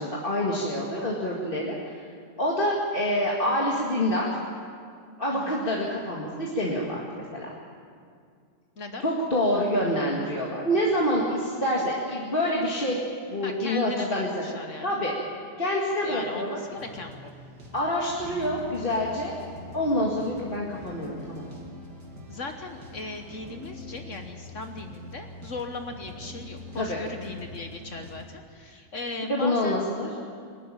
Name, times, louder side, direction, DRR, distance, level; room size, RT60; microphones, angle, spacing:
voice 1, 0.0-1.8 2.4-4.3 5.2-7.5 9.0-13.0 13.3-14.4 14.8-15.1 15.6-16.6 17.7-19.3 19.7-21.5 26.8-27.0 29.2-30.1, left 1 dB, 35° left, -3 dB, 2.2 m, -26 dB
voice 2, 13.4-14.9 16.0-17.3 22.3-29.8, left 3 dB, 50° left, 5 dB, 1.5 m, -38 dB
sound 1, 16.7-28.2, left 1 dB, 90° right, 3.2 m, -44 dB
21.5 x 12.5 x 10.0 m, 2.2 s
omnidirectional pair, 1.7 m